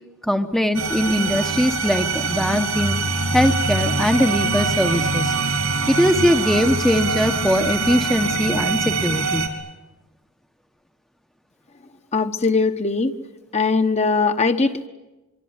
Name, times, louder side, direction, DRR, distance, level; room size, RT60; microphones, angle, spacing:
voice 1, 0.2-3.0 3.3-5.3 5.9-9.5, equal, ahead, 6 dB, 0.9 m, -21 dB
sound 1, 0.7-9.5, right 3 dB, 80° right, 3.6 m, -23 dB
voice 2, 12.1-13.1 13.5-14.9, left 4 dB, 30° left, 8 dB, 1.1 m, -20 dB
25.5 x 24.0 x 9.5 m, 1.1 s
head